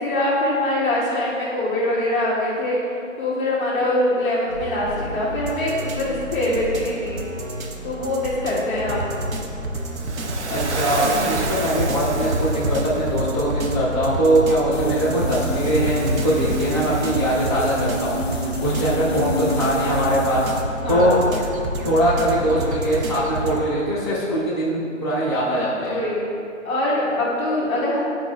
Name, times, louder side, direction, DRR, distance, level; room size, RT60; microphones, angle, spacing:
voice 1, 0.0-2.8 3.2-7.2 7.8-9.1 20.8-21.2 25.8-26.3 26.6-28.0, left 1 dB, 10° left, -10 dB, 1.0 m, -23 dB
sound 1, 4.5-23.6, right 1 dB, 85° right, 0.9 m, -28 dB
Waves surf, 9.9-13.1 14.9-18.0, right 4 dB, 60° right, 0.7 m, -33 dB
voice 2, 10.5-20.5 20.9-21.2 21.8-26.0, right 1 dB, 20° right, -10 dB, 0.4 m, -21 dB
sound 2, 14.7-20.6, left 1 dB, 50° left, 0.5 m, -30 dB
9.5 x 5.1 x 2.3 m, 2.6 s
hypercardioid pair, 160°, 40 cm